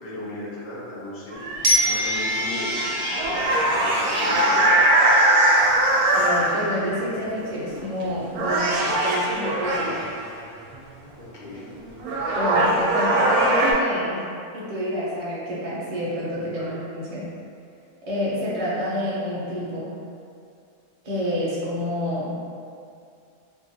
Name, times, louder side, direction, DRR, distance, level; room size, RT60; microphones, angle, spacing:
voice 1, 0.0-4.8 11.1-11.6 16.4-16.7, left 1 dB, 50° left, -7 dB, 0.6 m, -37 dB
sound 1, 1.3-6.9 7.8-8.0 8.3-10.2 11.6-11.7 12.0-13.7, right 1 dB, 85° right, 1.1 m, -21 dB
Glockenspiel, 1.6-4.5, equal, 65° right, 1.0 m, -26 dB
voice 2, 6.1-10.0 12.3-14.3 14.5-17.3 18.0-20.0 21.0-22.4, equal, 35° right, -8 dB, 0.6 m, -28 dB
3.5 x 2.3 x 2.7 m, 2.4 s
omnidirectional pair, 1.5 m